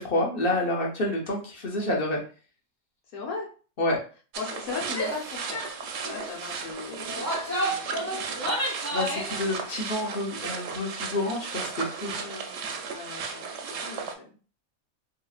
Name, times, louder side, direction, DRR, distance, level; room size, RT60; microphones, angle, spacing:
voice 1, 0.0-2.2 3.8-4.0 8.9-12.2, left 1 dB, 50° left, -1 dB, 0.8 m, -28 dB
voice 2, 3.1-3.5 4.4-5.7 6.1-8.6 12.0-14.3, left 4 dB, 85° left, -1 dB, 1.3 m, -38 dB
sound 1, 4.3-14.1, right 5 dB, 65° right, 0.7 m, -35 dB
Female speech woman speaking / Yell, 4.9-5.2 5.5-5.7 6.0-6.3 7.0-9.4, right 1 dB, 15° left, 0.9 m, -31 dB
3.0 x 2.8 x 2.3 m, 0.39 s
omnidirectional pair, 1.4 m